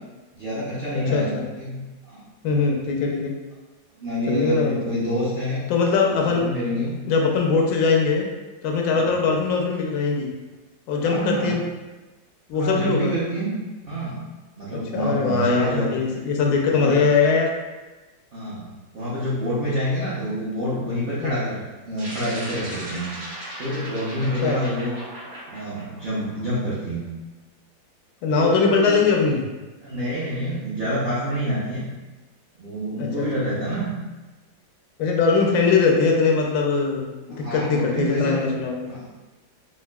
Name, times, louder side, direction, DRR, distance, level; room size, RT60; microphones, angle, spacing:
voice 1, 0.3-2.3 4.0-5.6 6.1-7.0 8.9-9.2 11.0-11.5 12.6-13.6 13.8-14.2 14.6-15.9 16.7-17.1 18.3-18.7 18.9-23.1 23.6-25.0 25.5-27.0 28.3-29.0 29.8-31.8 32.6-33.9 37.3-38.4 38.9-39.1, equal, 65° right, -10 dB, 0.5 m, -27 dB
voice 2, 0.9-1.4 2.4-3.3 4.3-4.8 5.7-6.5 7.1-8.2 8.6-10.3 10.9-11.6 12.5-13.1 14.7-17.5 21.2-21.3 24.4-24.6 28.2-29.4 33.0-33.3 35.0-38.9, left 4 dB, 75° left, 0 dB, 1.2 m, -21 dB
sound 1, 22.0-26.7, right 1 dB, 85° right, 1.8 m, -37 dB
4.6 x 2.4 x 2.3 m, 1.2 s
omnidirectional pair, 2.1 m